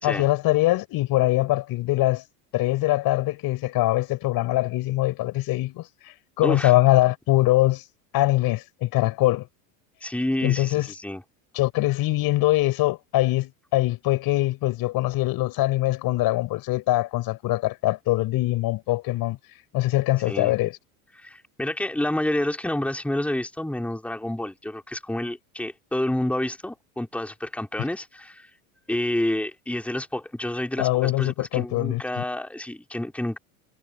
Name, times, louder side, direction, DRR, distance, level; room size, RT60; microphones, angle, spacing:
voice 1, 0.0-2.2 2.5-7.8 8.1-9.5 10.4-10.9 11.5-19.4 19.7-20.8 30.8-32.2, left 17 dB, 55° left, 4.2 m, -23 dB
voice 2, 10.0-11.2 20.3-20.5 21.2-28.5 28.9-33.4, left 1 dB, 5° left, 3.2 m, -29 dB
supercardioid pair, 100°, 43 cm